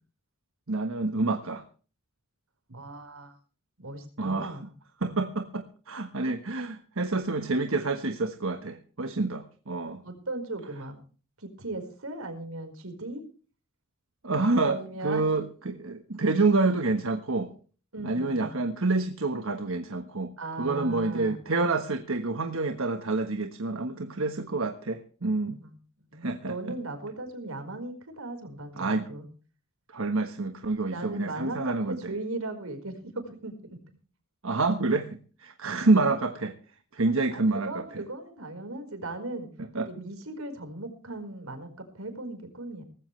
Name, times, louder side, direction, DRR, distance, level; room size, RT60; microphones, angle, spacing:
voice 1, 0.7-1.6 4.2-4.6 5.0-10.0 14.2-17.5 18.0-25.6 26.2-26.5 28.8-29.1 29.9-32.1 34.4-36.5 36.9-38.0 39.7-39.9, right 3 dB, 70° right, 7 dB, 1.4 m, -28 dB
voice 2, 2.7-3.3 3.8-4.7 6.2-6.4 10.0-11.0 11.4-13.2 14.6-15.2 17.9-18.6 20.4-21.4 25.6-25.7 26.1-29.2 30.9-33.8 37.3-39.5 39.8-42.8, right 2 dB, 90° right, 6 dB, 4.8 m, -38 dB
19.0 x 15.5 x 3.3 m, 0.39 s
head